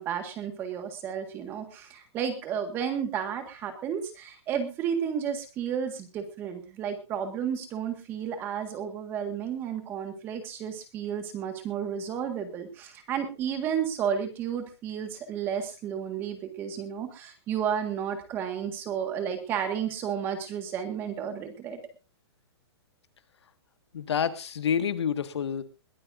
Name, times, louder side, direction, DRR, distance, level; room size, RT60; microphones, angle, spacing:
voice 1, 0.0-21.8, right 8 dB, 15° right, 7 dB, 1.7 m, -32 dB
voice 2, 23.9-25.6, left 7 dB, 80° left, 10 dB, 1.7 m, -28 dB
21.0 x 14.0 x 2.6 m, 0.29 s
hypercardioid pair, 175°, 14 cm